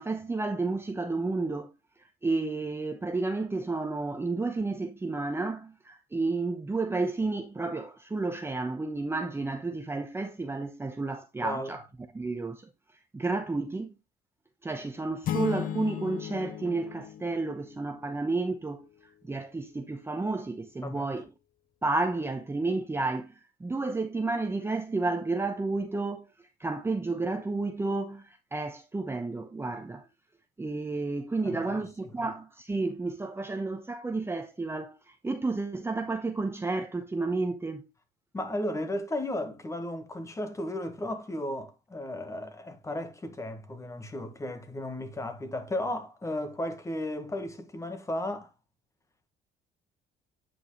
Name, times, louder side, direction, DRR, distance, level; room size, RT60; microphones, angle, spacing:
voice 1, 0.0-1.7 2.2-11.8 12.1-12.7 13.1-13.9 14.6-18.8 19.2-21.3 21.8-26.3 26.6-30.0 30.6-37.9, right 3 dB, 15° right, 0.8 m, -31 dB
voice 2, 11.4-11.8 20.8-21.1 31.4-31.8 32.2-32.3 38.3-48.5, left 1 dB, 15° left, 1.5 m, -34 dB
sound 1, 15.2-18.0, left 10 dB, 55° left, 0.7 m, -35 dB
9.0 x 5.5 x 3.1 m
cardioid pair, 110°, 17 cm